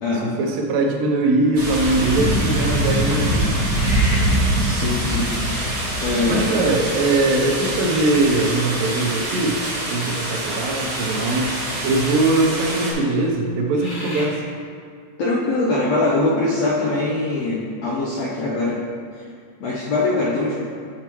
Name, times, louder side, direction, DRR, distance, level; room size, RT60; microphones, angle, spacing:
voice 1, 0.4-3.5 6.3-9.6 9.9-11.6 11.8-14.4, right 2 dB, 90° right, 1 dB, 2.5 m, -21 dB
sound 1, 1.5-12.9, right 1 dB, 55° right, 0.9 m, -23 dB
sound 2, 3.7-4.4 5.7-5.8 6.7-7.2 7.6-7.7 8.3-9.0 10.6-10.7 11.0-11.6 12.3-12.4 13.4-14.4, left 2 dB, 60° left, 1.3 m, -35 dB
voice 2, 4.5-5.6 6.0-6.5 15.2-18.8 19.1-19.3 19.6-20.5, left 2 dB, 75° left, -4 dB, 1.5 m, -22 dB
9.2 x 5.7 x 3.0 m, 2.3 s
omnidirectional pair, 3.9 m